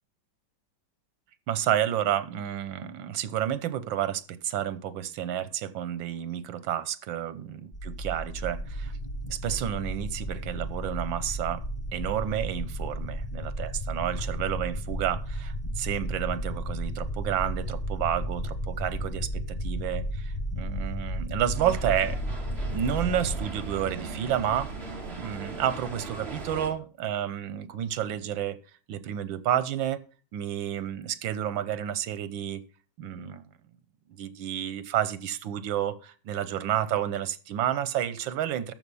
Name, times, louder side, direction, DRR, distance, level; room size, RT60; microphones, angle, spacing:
voice 1, 1.5-8.9 9.2-11.6 11.9-22.2 22.7-24.7 25.1-28.6 28.9-30.0 30.3-32.6 33.0-33.5 34.2-38.7, right 10 dB, 90° right, 15 dB, 1.6 m, -30 dB
sound 1, 7.7-23.5, equal, 30° left, 0.6 m, -33 dB
sound 2, 21.5-26.7, right 3 dB, 35° right, 2.2 m, -38 dB
13.5 x 5.7 x 5.5 m, 0.37 s
omnidirectional pair, 2.1 m